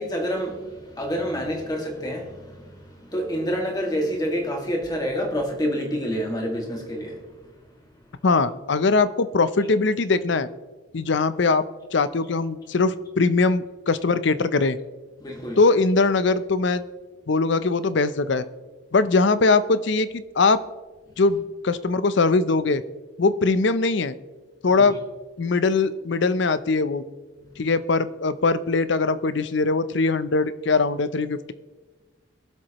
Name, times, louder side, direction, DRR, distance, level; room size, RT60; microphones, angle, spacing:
voice 1, 0.0-7.5 15.2-15.6 24.7-24.9 27.4-27.5, equal, 20° left, 1.9 m, -28 dB
voice 2, 8.2-10.5 10.9-11.6 11.9-14.8 15.6-16.8 17.3-18.5 18.9-20.6 21.2-22.8 23.2-24.1 24.6-25.0 25.4-27.0 27.6-31.5, left 3 dB, 65° left, 0.6 m, -21 dB
22.0 x 7.7 x 3.0 m
head